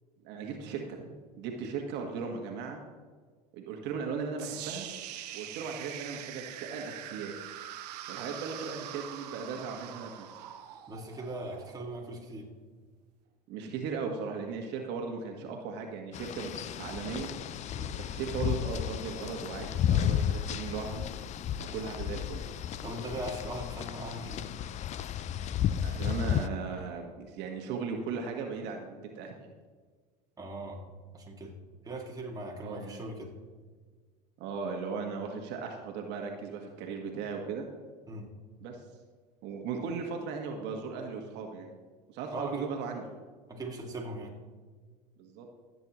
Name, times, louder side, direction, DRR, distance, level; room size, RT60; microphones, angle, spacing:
voice 1, 0.2-2.8 3.5-4.9 5.3-7.3 8.1-10.5 13.5-17.3 18.0-21.1 21.6-22.4 25.5-29.5 32.6-33.0 34.4-37.7 38.6-38.8 39.4-41.8 42.1-43.0 45.2-45.5, right 5 dB, 60° right, 2 dB, 1.5 m, -37 dB
sound 1, 4.4-12.4, right 12 dB, 80° right, 0.8 m, -43 dB
voice 2, 10.9-12.5 17.8-18.0 21.7-21.8 22.8-24.5 30.4-30.9 31.1-31.6 31.8-33.4 38.1-38.3 42.3-42.7 43.5-44.3, right 1 dB, 20° right, -1 dB, 2.0 m, -40 dB
sound 2, 16.1-26.5, left 10 dB, 35° left, 0.4 m, -33 dB
15.0 x 8.0 x 3.0 m, 1.5 s
hypercardioid pair, 90°, 20 cm